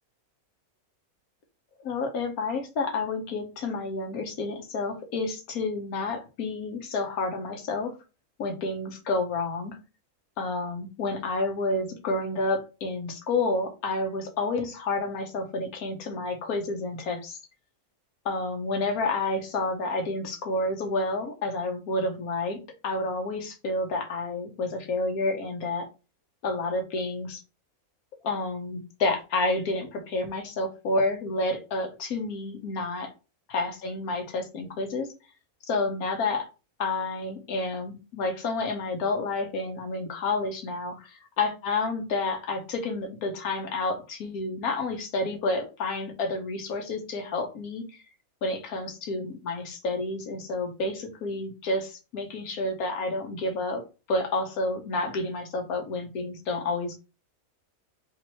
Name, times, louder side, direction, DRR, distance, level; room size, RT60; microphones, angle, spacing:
voice 1, 1.8-8.0 8.4-9.8 10.4-17.4 18.2-22.6 22.8-25.9 26.4-27.4 28.2-33.1 33.5-35.1 35.7-36.5 36.8-41.1 41.4-47.8 48.4-53.8 54.1-57.0, left 2 dB, 85° left, 5 dB, 1.4 m, -29 dB
3.3 x 3.0 x 4.3 m, 0.30 s
omnidirectional pair, 1.5 m